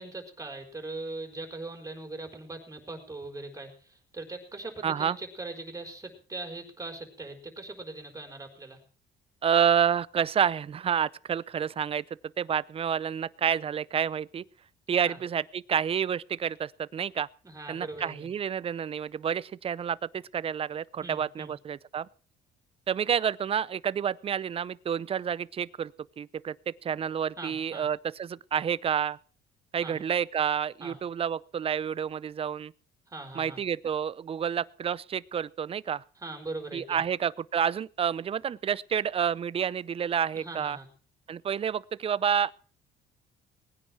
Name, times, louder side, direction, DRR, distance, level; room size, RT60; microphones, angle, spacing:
voice 1, 0.0-8.8 15.0-15.2 17.4-18.3 21.0-21.5 27.4-27.9 29.8-30.0 30.8-31.0 33.1-33.6 36.2-37.0 40.3-40.9, right 2 dB, 20° right, 4.6 m, -40 dB
voice 2, 4.8-5.2 9.4-12.0 12.4-14.4 14.9-17.3 17.7-22.1 22.9-25.9 26.2-26.5 26.8-29.2 29.7-32.7 33.3-36.0 36.7-40.8 41.3-42.5, right 8 dB, 35° right, 0.6 m, -29 dB
20.0 x 9.9 x 6.1 m
cardioid pair, 110°, 17 cm